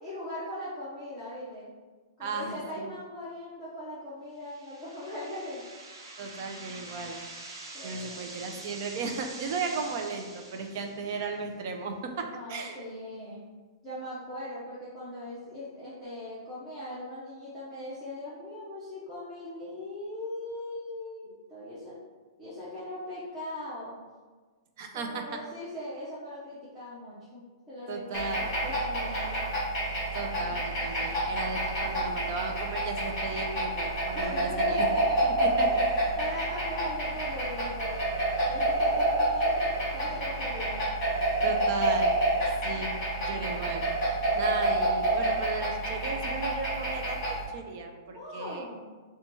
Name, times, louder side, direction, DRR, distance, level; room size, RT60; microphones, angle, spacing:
voice 1, 0.0-1.7 2.2-5.6 7.7-8.4 12.3-13.4 13.8-22.0 22.4-24.0 24.9-27.4 27.7-29.4 30.4-30.6 34.1-35.2 35.7-38.0 38.5-39.7 39.9-40.8 48.1-48.8, left 1 dB, 5° right, -13 dB, 0.7 m, -40 dB
voice 2, 2.2-2.9 6.2-7.2 7.8-12.8 24.8-25.2 27.9-28.5 30.1-34.9 35.2-35.9 41.4-42.2 42.6-48.7, right 4 dB, 35° right, 4 dB, 0.3 m, -36 dB
sound 1, 4.4-11.4, right 2 dB, 80° right, 0.9 m, -45 dB
sound 2, 28.1-47.4, right 1 dB, 15° left, 1.4 m, -28 dB
5.3 x 2.2 x 3.0 m, 1.4 s
hypercardioid pair, 175°, 2 cm